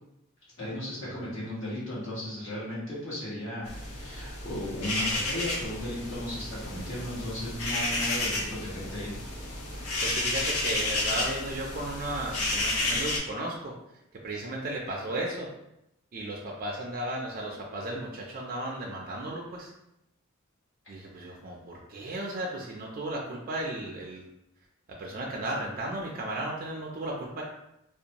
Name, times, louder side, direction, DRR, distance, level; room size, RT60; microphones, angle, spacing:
voice 1, 0.6-9.1, left 1 dB, 65° left, -9 dB, 1.2 m, -36 dB
sound 1, 3.6-13.2, left 2 dB, 80° left, 0.6 m, -31 dB
voice 2, 9.8-13.8 14.2-15.5 16.1-19.7 20.9-24.2 24.9-27.4, right 1 dB, 45° right, -2 dB, 0.4 m, -35 dB
2.5 x 2.1 x 2.8 m, 0.83 s
head